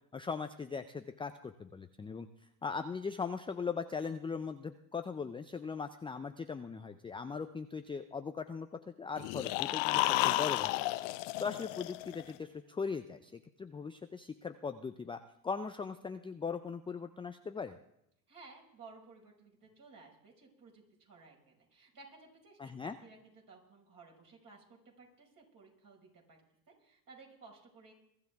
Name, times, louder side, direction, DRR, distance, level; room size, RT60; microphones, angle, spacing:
voice 1, 0.1-2.3 2.6-10.7 11.4-17.8 22.6-23.0, left 5 dB, 10° left, 8 dB, 0.4 m, -39 dB
sound 1, 9.2-12.3, left 17 dB, 60° left, 0.9 m, -32 dB
voice 2, 18.3-26.4 26.7-27.9, right 4 dB, 40° right, 0 dB, 5.5 m, -57 dB
22.5 x 12.5 x 3.5 m, 0.77 s
hypercardioid pair, 85°, 50 cm